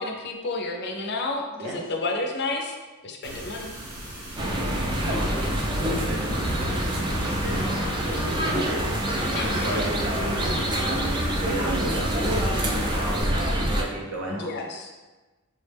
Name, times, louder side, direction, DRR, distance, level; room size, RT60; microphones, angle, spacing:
voice 1, 0.0-2.7 3.0-3.7 9.3-9.9 14.3-15.0, left 2 dB, 50° left, 2 dB, 0.4 m, -31 dB
sound 1, 3.2-13.2, right 1 dB, 90° right, 1.1 m, -39 dB
sound 2, 4.4-13.8, right 1 dB, 20° right, 0.3 m, -26 dB
voice 2, 4.4-14.5, right 1 dB, 60° right, -1 dB, 0.7 m, -35 dB
3.5 x 2.0 x 3.3 m, 1.2 s
head